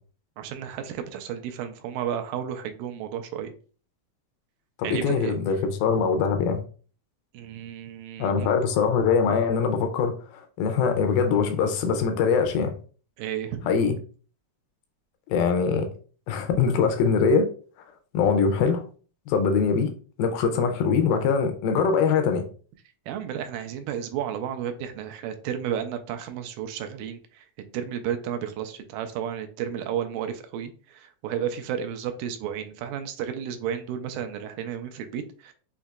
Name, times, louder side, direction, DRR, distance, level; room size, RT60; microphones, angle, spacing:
voice 1, 0.4-3.5 4.8-5.3 7.3-8.5 13.2-13.7 23.1-27.4 27.7-35.5, right 9 dB, 80° right, 2.1 m, -32 dB
voice 2, 4.8-6.6 8.2-12.7 13.7-14.0 15.3-15.9 16.3-17.5 18.1-18.8 19.3-19.9 20.2-22.4, left 5 dB, 85° left, 2.5 m, -23 dB
6.4 x 2.7 x 2.3 m
omnidirectional pair, 4.2 m